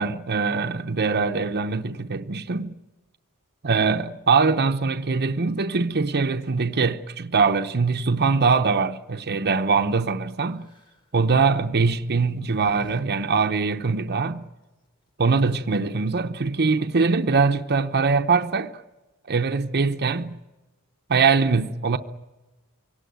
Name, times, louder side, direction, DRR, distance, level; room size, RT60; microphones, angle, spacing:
voice 1, 0.0-2.7 3.6-10.7 11.1-14.5 15.2-18.7 19.3-20.4 21.1-22.0, right 4 dB, 50° right, 0.8 m, -22 dB
sound 1, 10.6-11.0 12.0-13.0 13.3-13.4 15.1-15.2 15.4-15.8, equal, 20° left, 1.8 m, -45 dB
24.0 x 18.0 x 9.3 m
head